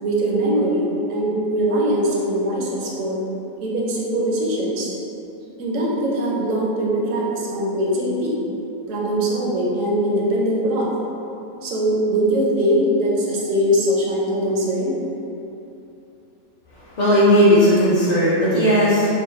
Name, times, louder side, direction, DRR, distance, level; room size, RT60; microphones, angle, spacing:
voice 1, 0.0-3.2 3.6-4.9 5.6-8.4 8.9-10.9 11.6-15.0, right 1 dB, 65° right, -4 dB, 0.9 m, -21 dB
voice 2, 17.0-19.1, equal, 60° left, -11 dB, 0.4 m, -16 dB
5.0 x 2.2 x 2.5 m, 2.8 s
omnidirectional pair, 1.6 m